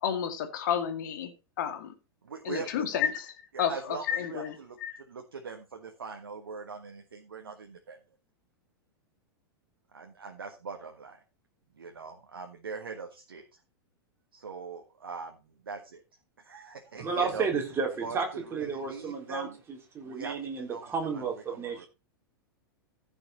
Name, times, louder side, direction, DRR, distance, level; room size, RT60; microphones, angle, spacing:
voice 1, 0.0-1.9 2.4-3.3 3.6-5.0, left 8 dB, 55° left, 2.2 m, -31 dB
voice 2, 2.2-3.0 3.5-8.0 9.9-11.2 11.8-13.6 14.3-15.4 15.6-16.0 16.4-17.5 18.0-19.6 20.0-21.8, right 5 dB, 70° right, 1.6 m, -42 dB
voice 3, 17.0-21.9, right 5 dB, 20° right, 4.1 m, -32 dB
15.0 x 6.1 x 4.3 m
figure-of-eight pair, 95°, 12 cm